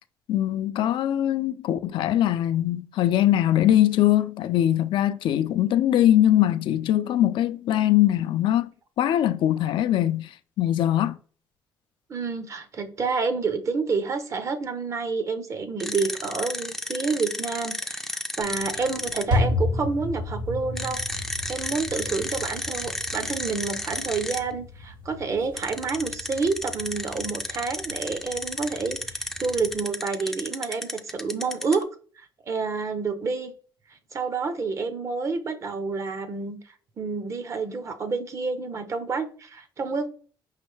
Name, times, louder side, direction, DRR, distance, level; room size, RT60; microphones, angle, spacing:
voice 1, 0.3-8.7 9.0-10.3 10.6-11.2, left 12 dB, 70° left, 0.3 m, -22 dB
voice 2, 12.1-31.8 32.2-33.5 34.1-36.6 37.0-40.1, right 4 dB, 35° right, 0.6 m, -29 dB
sound 1, 15.8-19.2 20.8-24.4 25.6-31.8, left 1 dB, 5° left, 0.4 m, -32 dB
sound 2, 18.4-29.8, left 2 dB, 65° right, 1.4 m, -33 dB
5.2 x 3.2 x 3.2 m
cardioid pair, 130°, 9 cm